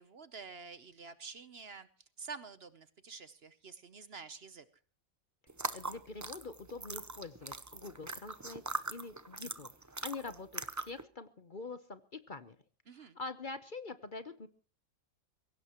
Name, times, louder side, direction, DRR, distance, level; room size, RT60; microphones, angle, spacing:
voice 1, 0.0-1.9 2.2-4.6 12.9-13.2, right 5 dB, 50° right, 13 dB, 1.0 m, -48 dB
sound 1, 5.5-11.0, right 3 dB, 20° right, 0.5 m, -41 dB
voice 2, 5.7-9.7 10.0-12.6 12.9-14.5, left 3 dB, 40° left, 11 dB, 0.9 m, -45 dB
23.0 x 17.0 x 3.0 m, 0.37 s
omnidirectional pair, 1.5 m